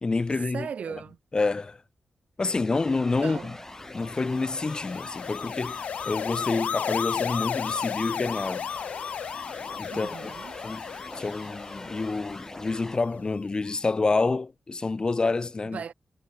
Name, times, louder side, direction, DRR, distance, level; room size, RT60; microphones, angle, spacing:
voice 1, 0.0-0.7 1.3-1.8 2.4-3.5 3.9-5.8 6.1-8.6 9.8-10.3 10.6-10.8 11.1-15.8, left 3 dB, 35° left, 1.5 m, -28 dB
voice 2, 0.5-1.2 3.2-3.6 9.9-10.6 15.7-15.9, right 7 dB, 70° right, 1.1 m, -37 dB
sound 1, 2.4-13.0, left 2 dB, 20° left, 4.0 m, -42 dB
sound 2, 2.5-13.3, right 5 dB, 55° right, 5.4 m, -56 dB
sound 3, 3.8-13.1, left 8 dB, 80° left, 2.1 m, -34 dB
cardioid pair, 70°, 2 cm